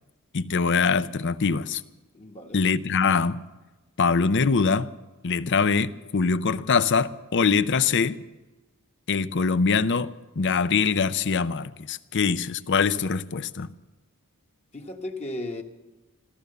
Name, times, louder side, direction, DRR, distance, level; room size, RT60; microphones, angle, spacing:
voice 1, 0.3-1.8 2.5-3.4 4.0-4.9 5.2-8.2 9.1-13.7, left 5 dB, 55° left, 0.6 m, -23 dB
voice 2, 2.1-2.7 14.7-15.6, left 1 dB, 30° left, 1.3 m, -35 dB
14.5 x 14.0 x 6.7 m
head